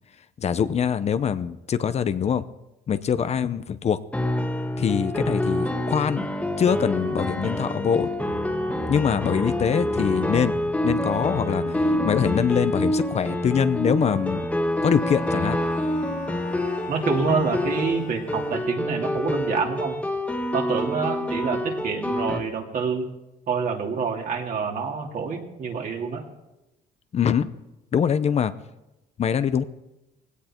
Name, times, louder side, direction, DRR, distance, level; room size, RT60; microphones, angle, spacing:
voice 1, 0.4-2.4 2.9-4.0 4.8-6.3 6.6-8.1 8.9-10.5 10.8-14.5 14.8-15.6 27.1-27.5 27.9-28.5 29.2-29.6, left 7 dB, 40° left, 12 dB, 0.8 m, -23 dB
sound 1, 4.1-22.4, left 1 dB, 10° left, 1.6 m, -27 dB
sound 2, 7.3-12.5, left 7 dB, 80° left, 1.9 m, -37 dB
Bowed string instrument, 14.6-19.2, left 4 dB, 55° left, 1.4 m, -42 dB
voice 2, 16.9-20.0 20.5-23.1 23.5-26.2, right 5 dB, 55° right, 1 dB, 2.9 m, -27 dB
18.5 x 16.5 x 4.5 m, 0.95 s
cardioid pair, 110°, 17 cm